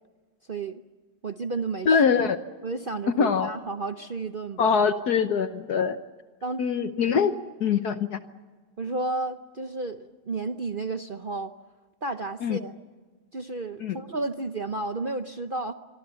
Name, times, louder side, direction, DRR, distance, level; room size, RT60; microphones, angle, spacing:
voice 1, 0.5-0.8 1.2-2.0 2.6-4.8 6.4-6.6 8.8-11.5 12.0-12.8 13.3-15.7, right 3 dB, 45° right, 8 dB, 0.6 m, -32 dB
voice 2, 1.9-2.4 3.2-3.5 4.6-6.0 6.6-7.3 7.6-8.2 12.4-12.6 13.8-14.0, left 6 dB, 60° left, 10 dB, 1.4 m, -23 dB
26.5 x 24.0 x 7.0 m, 1.4 s
omnidirectional pair, 2.0 m